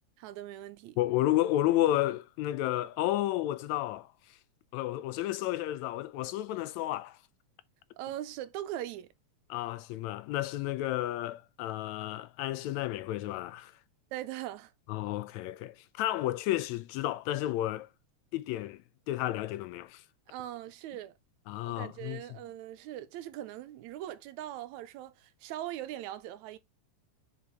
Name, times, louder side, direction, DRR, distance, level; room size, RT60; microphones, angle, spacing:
voice 1, 0.2-1.0 8.0-9.1 14.1-14.7 20.3-21.1 21.6-26.6, right 13 dB, 80° right, 2.0 m, -40 dB
voice 2, 1.0-4.4 4.7-7.2 9.5-13.8 14.9-17.9 18.3-20.0 21.5-22.4, left 14 dB, 80° left, 1.7 m, -32 dB
7.3 x 5.2 x 3.4 m
omnidirectional pair, 3.4 m